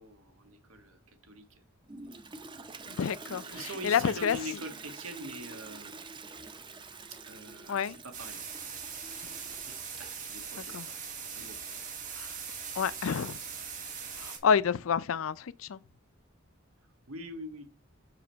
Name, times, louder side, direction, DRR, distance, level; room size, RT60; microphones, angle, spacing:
voice 1, 0.0-1.6 3.3-6.0 7.2-8.4 9.2-11.6 17.1-17.6, right 1 dB, 85° right, 1.6 m, -44 dB
Toilet flush, 1.9-10.4, right 4 dB, 25° right, 0.6 m, -47 dB
voice 2, 2.9-4.4 7.7-8.0 10.7-10.9 12.2-12.3 12.8-13.4 14.2-15.8, left 7 dB, 75° left, 0.4 m, -29 dB
sound 1, 8.1-14.4, right 6 dB, 40° right, 2.0 m, -41 dB
5.9 x 5.0 x 4.6 m
head